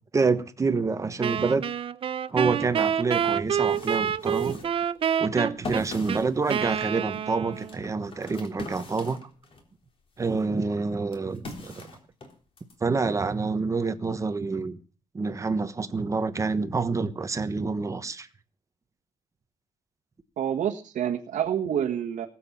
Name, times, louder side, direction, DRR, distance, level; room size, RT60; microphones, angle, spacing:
voice 1, 0.1-1.6 2.3-4.6 5.2-9.2 10.2-11.9 12.8-14.8 15.1-18.3, right 4 dB, 20° right, 1.1 m, -27 dB
Wind instrument woodwind instrument, 1.2-7.8, right 8 dB, 40° right, 0.7 m, -28 dB
sound 1, 3.3-9.7 10.1-12.8, left 2 dB, 40° left, 3.4 m, -42 dB
voice 2, 20.4-22.3, right 9 dB, 60° right, 1.6 m, -28 dB
19.5 x 7.5 x 7.4 m
cardioid pair, 160°, 15 cm